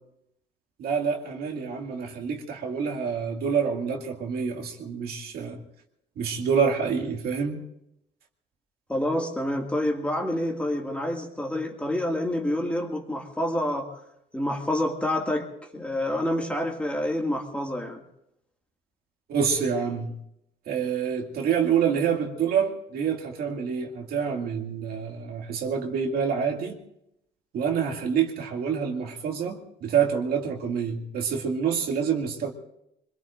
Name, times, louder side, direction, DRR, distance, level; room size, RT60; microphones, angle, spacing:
voice 1, 0.8-5.6 6.2-7.6 19.3-20.1 20.7-26.8 27.5-32.5, right 7 dB, 65° right, 2 dB, 2.3 m, -27 dB
voice 2, 8.9-14.0 14.3-15.5 15.7-18.0, left 1 dB, 5° left, 1 dB, 2.2 m, -28 dB
25.0 x 22.0 x 2.6 m, 0.80 s
cardioid pair, 110°, 17 cm